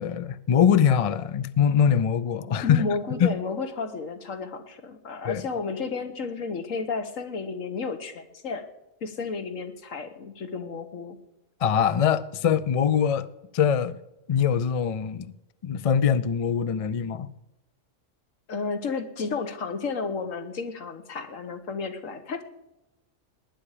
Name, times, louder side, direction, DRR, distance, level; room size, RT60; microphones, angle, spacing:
voice 1, 0.0-2.8 3.2-3.3 5.2-5.4 11.6-13.3 13.5-14.0 14.3-15.3 15.6-17.3, left 8 dB, 60° left, 0.3 m, -23 dB
voice 2, 2.5-8.6 9.0-11.2 18.5-22.4, left 4 dB, 80° left, 1.6 m, -32 dB
19.0 x 10.0 x 5.0 m
omnidirectional pair, 1.4 m